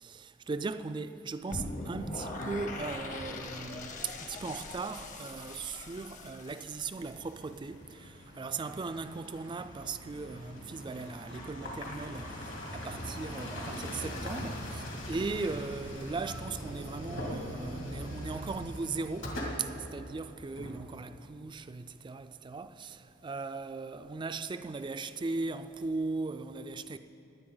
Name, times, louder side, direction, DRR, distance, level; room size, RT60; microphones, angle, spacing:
voice 1, 0.0-27.0, right 4 dB, 25° right, 0.3 m, -38 dB
sound 1, 1.5-7.5, left 2 dB, 40° left, 0.9 m, -41 dB
sound 2, 7.1-21.3, equal, 70° left, 2.3 m, -41 dB
18.5 x 10.5 x 3.9 m
head